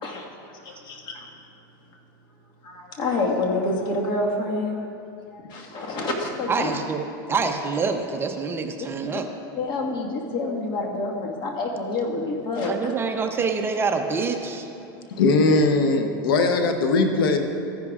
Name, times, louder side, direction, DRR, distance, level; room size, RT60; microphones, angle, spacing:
voice 1, 0.0-1.2 2.6-4.9 5.3-6.8 9.1-9.2 9.5-12.9, left 2 dB, 40° left, -1 dB, 1.7 m, -28 dB
voice 2, 6.5-9.3 12.7-14.7, right 4 dB, 20° right, 5 dB, 0.6 m, -26 dB
voice 3, 15.2-17.4, left 3 dB, 85° left, 5 dB, 0.9 m, -20 dB
14.5 x 10.5 x 2.4 m, 2.7 s
supercardioid pair, 130°, 11 cm